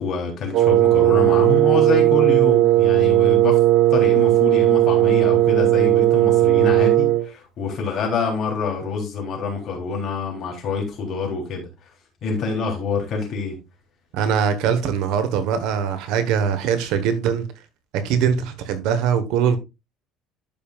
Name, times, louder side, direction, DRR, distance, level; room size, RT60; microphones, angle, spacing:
voice 1, 0.0-3.6 3.9-11.7 12.2-13.6, left 4 dB, 45° left, 3.4 m, -26 dB
Wind instrument woodwind instrument, 0.5-7.3, right 15 dB, 55° right, 0.9 m, -16 dB
voice 2, 14.1-17.4 17.9-19.6, right 7 dB, 70° right, 1.3 m, -22 dB
12.0 x 5.3 x 2.4 m
cardioid pair, 145°, 0 cm